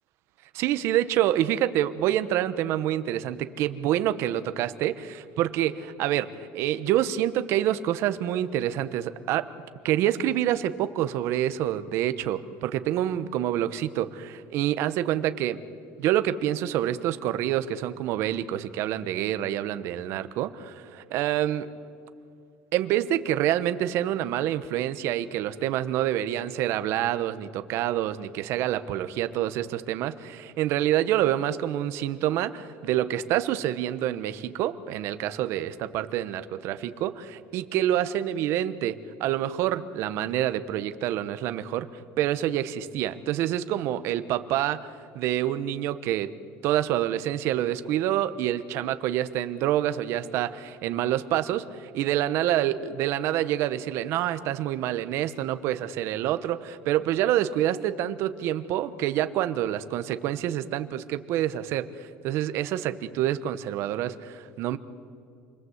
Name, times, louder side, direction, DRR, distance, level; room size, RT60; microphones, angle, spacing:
voice 1, 0.5-9.5 9.8-15.6 16.0-21.7 22.7-46.3 46.6-64.8, right 12 dB, 55° right, 11 dB, 1.0 m, -27 dB
28.5 x 21.0 x 8.0 m, 2.4 s
cardioid pair, 175°, 5 cm